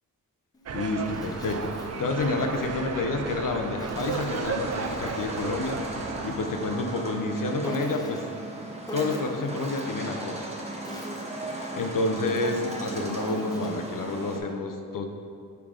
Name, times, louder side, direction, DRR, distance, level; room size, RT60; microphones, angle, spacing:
Insect, 0.5-2.7 3.8-5.9 7.6-8.4 8.9-10.0 10.6-13.9, equal, 10° left, 0.7 m, -43 dB
voice 1, 0.7-5.8 6.2-8.2 8.9-10.5 11.5-15.0, left 2 dB, 70° left, 4 dB, 0.7 m, -29 dB
university circle, 0.7-6.3, right 5 dB, 50° right, 0.4 m, -34 dB
obras especulosas, 1.3-14.4, right 1 dB, 20° right, 0.8 m, -37 dB
6.9 x 3.7 x 5.0 m, 2.3 s
wide cardioid pair, 90°, 34 cm